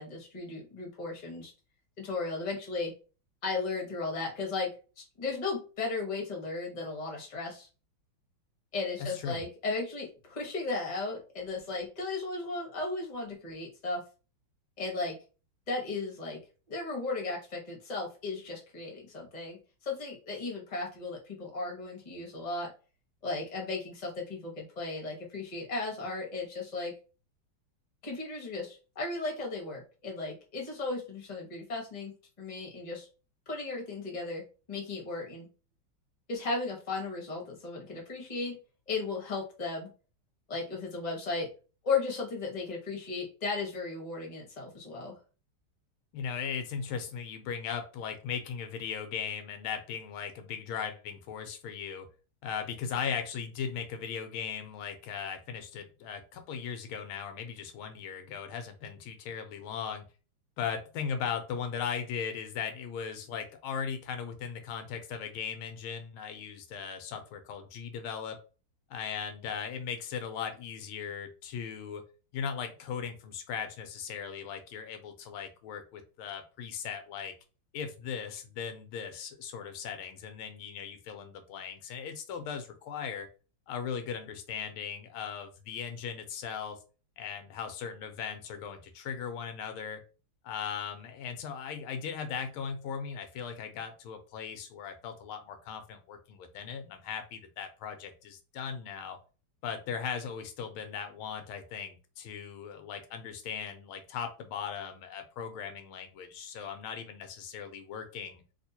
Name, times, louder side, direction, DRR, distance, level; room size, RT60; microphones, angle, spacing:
voice 1, 0.0-1.5 2.0-2.9 3.4-4.7 5.0-7.7 8.7-14.0 14.8-15.1 15.7-16.4 16.7-22.7 23.2-26.9 28.0-32.1 32.4-33.1 33.5-34.4 34.7-35.5 36.3-38.6 38.9-39.9 40.5-41.5 41.8-45.1, left 3 dB, 25° left, 0 dB, 1.0 m, -35 dB
voice 2, 9.0-9.4 46.1-52.1 52.4-60.0 60.6-68.4 68.9-72.0 72.3-77.3 77.7-83.3 83.7-86.8 87.2-90.0 90.4-99.2 99.6-108.4, left 7 dB, 90° left, 7 dB, 1.5 m, -38 dB
3.5 x 2.8 x 2.7 m, 0.34 s
omnidirectional pair, 2.3 m